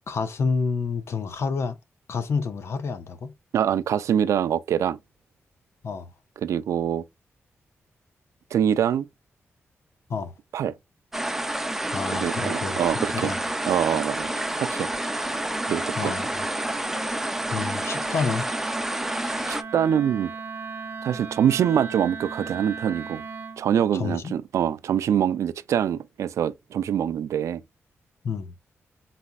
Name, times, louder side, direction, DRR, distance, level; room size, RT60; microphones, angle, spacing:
voice 1, 0.1-1.8 2.1-3.3 5.8-6.1 10.1-10.3 11.9-13.4 16.0-16.3 17.5-18.5 23.9-24.3 28.2-28.5, left 5 dB, 65° left, 0.7 m, -29 dB
voice 2, 3.5-5.0 6.4-7.0 8.5-9.1 10.5-10.7 12.1-13.3 13.7-14.3 14.6-14.9 15.7-16.2 19.5-20.3 21.0-23.2 23.6-27.6, right 9 dB, 90° right, 0.3 m, -24 dB
sound 1, 11.1-19.6, right 1 dB, 5° right, 0.5 m, -29 dB
Wind instrument woodwind instrument, 12.2-23.7, right 5 dB, 45° right, 0.8 m, -40 dB
4.1 x 4.1 x 2.3 m
wide cardioid pair, 105°, 5 cm